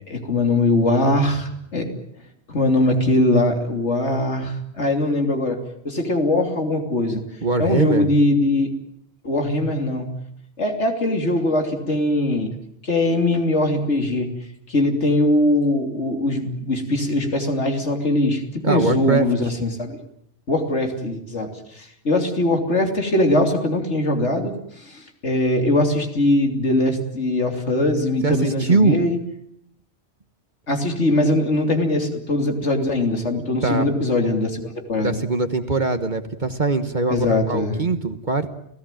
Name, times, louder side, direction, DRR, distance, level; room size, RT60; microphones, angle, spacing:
voice 1, 0.1-1.9 2.5-5.6 5.8-7.2 7.6-8.7 9.2-10.1 10.6-12.5 12.8-14.3 14.7-20.0 20.5-29.2 30.7-35.2 37.1-37.8, left 1 dB, 90° left, 4 dB, 3.4 m, -21 dB
voice 2, 7.4-8.1 18.6-19.5 28.2-29.0 33.6-33.9 35.0-38.5, right 3 dB, 45° right, 8 dB, 1.4 m, -22 dB
29.5 x 17.0 x 9.1 m, 0.74 s
omnidirectional pair, 1.2 m